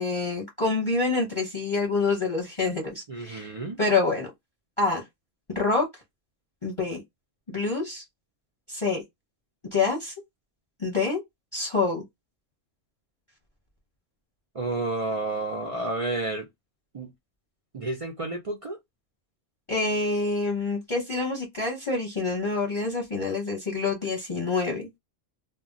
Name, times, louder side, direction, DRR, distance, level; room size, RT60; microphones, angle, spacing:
voice 1, 0.0-4.3 4.8-5.0 5.5-5.9 6.6-7.0 7.5-8.0 8.7-9.0 9.7-10.1 10.8-11.2 11.5-12.0 19.7-24.9, left 3 dB, 30° left, 0.8 m, -27 dB
voice 2, 3.1-3.8 14.6-16.5 16.9-17.1 17.7-18.8, right 2 dB, 65° right, 0.3 m, -30 dB
2.2 x 2.1 x 3.8 m
omnidirectional pair, 1.2 m